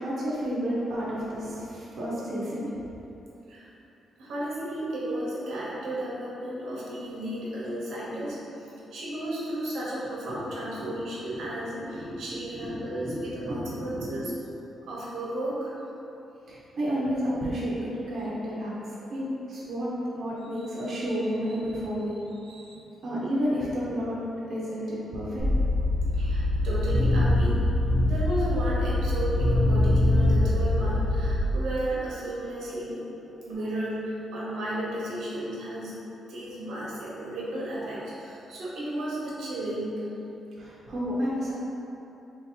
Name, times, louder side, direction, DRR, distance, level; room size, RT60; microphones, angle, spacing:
voice 1, 0.0-2.7 10.3-10.9 11.3-11.5 11.8-12.2 12.6-14.3 16.5-18.8 19.1-19.9 20.1-22.2 23.0-24.2 24.5-25.4 40.6-41.6, equal, 50° right, -8 dB, 0.7 m, -31 dB
voice 2, 4.2-8.4 8.9-14.3 14.8-15.7 22.4-22.8 26.1-27.7 28.0-33.0 33.4-35.9 36.3-40.1, right 1 dB, 80° right, -6 dB, 0.9 m, -33 dB
sound 1, 25.4-31.4, left 1 dB, 40° left, 0.9 m, -23 dB
3.1 x 2.7 x 4.3 m, 3.0 s
cardioid pair, 155°, 0 cm